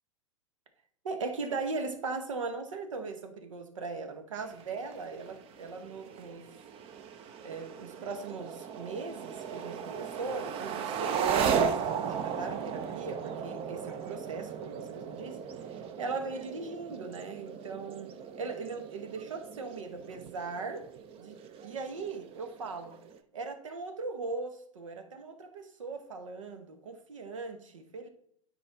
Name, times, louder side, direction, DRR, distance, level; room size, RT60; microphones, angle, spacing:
voice 1, 1.0-6.5 7.4-20.9 21.2-21.4 21.6-23.0 23.3-28.1, right 4 dB, 75° right, 8 dB, 1.1 m, -39 dB
sound 1, 4.4-23.2, right 7 dB, 35° right, 0.7 m, -36 dB
9.6 x 4.4 x 3.5 m, 0.69 s
hypercardioid pair, 95°, 17 cm